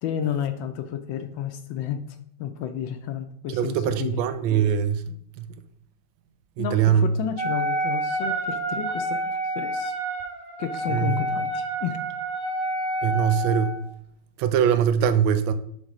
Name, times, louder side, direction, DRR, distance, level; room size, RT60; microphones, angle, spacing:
voice 1, 0.0-2.0 2.4-4.2 6.6-9.9 10.6-12.0, left 9 dB, 75° left, 1.3 m, -31 dB
voice 2, 3.5-5.2 6.6-7.1 10.9-11.2 13.0-13.8 14.4-15.5, right 8 dB, 75° right, 1.3 m, -22 dB
Wind instrument woodwind instrument, 7.4-13.8, right 1 dB, 55° right, 3.2 m, -28 dB
7.2 x 3.5 x 4.9 m
omnidirectional pair, 2.3 m